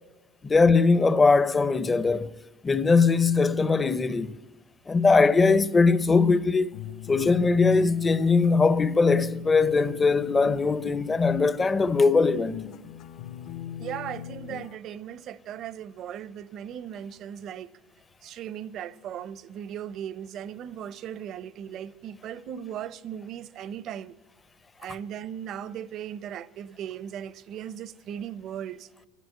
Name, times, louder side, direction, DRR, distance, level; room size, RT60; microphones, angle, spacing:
voice 1, 0.4-2.4 2.6-4.3 4.9-6.7 7.1-12.6, left 4 dB, 15° left, 0.6 m, -21 dB
sound 1, 6.7-14.8, left 10 dB, 55° left, 0.7 m, -41 dB
voice 2, 13.8-17.7 18.2-24.1 24.8-28.9, right 9 dB, 45° right, 0.6 m, -37 dB
27.5 x 11.5 x 9.2 m
cardioid pair, 135°, 0 cm